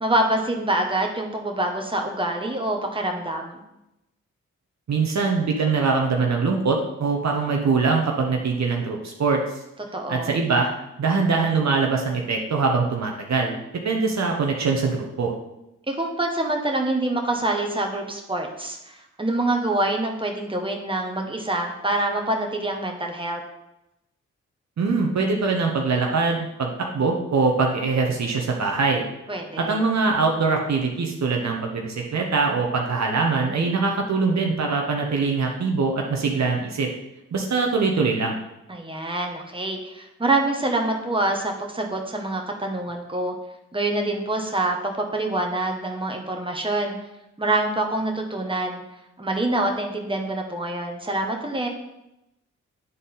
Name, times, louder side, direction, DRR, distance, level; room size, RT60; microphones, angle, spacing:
voice 1, 0.0-3.6 9.9-10.4 15.9-23.4 29.3-29.8 38.7-43.3 43.7-47.0 47.4-48.8 49.2-51.7, right 2 dB, 15° right, 2 dB, 1.5 m, -26 dB
voice 2, 4.9-9.6 10.1-10.7 11.0-13.6 13.8-15.3 24.8-29.0 29.6-36.9 37.3-38.3, right 4 dB, 60° right, 1 dB, 1.1 m, -23 dB
9.3 x 4.2 x 3.9 m, 0.90 s
supercardioid pair, 45°, 31 cm